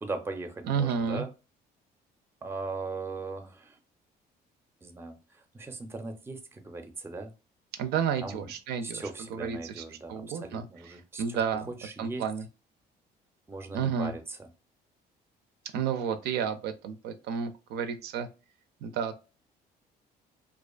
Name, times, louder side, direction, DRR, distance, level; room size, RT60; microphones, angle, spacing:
voice 1, 0.0-1.3 2.4-3.8 4.8-7.3 8.2-8.5 8.8-11.4 11.7-12.2 13.5-14.5, right 3 dB, 15° right, 7 dB, 0.4 m, -39 dB
voice 2, 0.7-1.3 7.8-9.0 9.3-10.6 11.2-11.7 12.0-12.4 13.7-14.1 15.7-18.3 18.8-19.2, right 7 dB, 75° right, 9 dB, 0.4 m, -31 dB
2.4 x 2.4 x 2.3 m, 0.31 s
cardioid pair, 110°, 17 cm